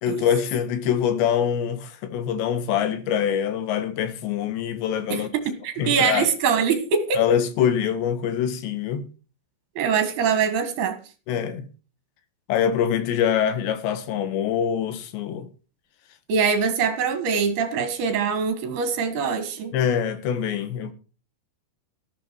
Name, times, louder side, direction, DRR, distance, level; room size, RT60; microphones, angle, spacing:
voice 1, 0.0-5.3 5.8-6.3 7.2-9.1 11.3-11.7 12.5-15.5 19.7-20.9, left 8 dB, 75° left, 3.9 m, -24 dB
voice 2, 5.1-7.2 9.8-11.0 16.3-19.7, right 6 dB, 65° right, 3.6 m, -23 dB
14.5 x 12.5 x 4.6 m
omnidirectional pair, 5.1 m